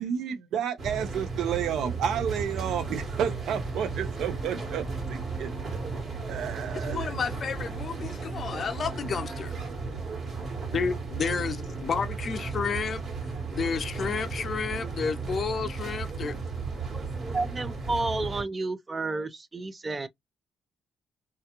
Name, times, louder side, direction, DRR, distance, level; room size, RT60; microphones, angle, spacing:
voice 1, 0.0-5.8 6.3-7.1, right 8 dB, 80° right, 0.5 m, -31 dB
sound 1, 0.8-18.4, right 4 dB, 50° right, 1.2 m, -34 dB
sound 2, 2.7-9.5, left 1 dB, 10° left, 0.9 m, -48 dB
voice 2, 6.8-9.5 10.7-13.0 13.5-16.4, left 5 dB, 50° left, 0.5 m, -31 dB
voice 3, 16.9-20.1, right 2 dB, 25° right, 0.4 m, -31 dB
2.3 x 2.2 x 2.8 m
cardioid pair, 90°, 0 cm